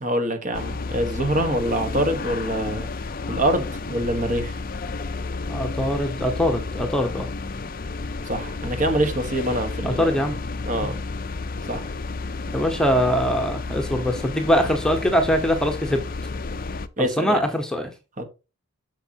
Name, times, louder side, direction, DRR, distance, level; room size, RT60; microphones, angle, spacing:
voice 1, 0.0-2.9 3.3-4.5 8.2-10.1 10.6-11.0 11.7-11.9 17.0-17.4 18.2-18.3, right 1 dB, 35° right, 1.3 m, -25 dB
sound 1, 0.5-16.9, left 3 dB, 40° left, 0.5 m, -31 dB
voice 2, 5.5-7.3 9.8-10.4 10.8-10.9 12.5-16.0 17.0-17.9, equal, 5° left, 1.0 m, -22 dB
7.9 x 6.5 x 2.9 m
head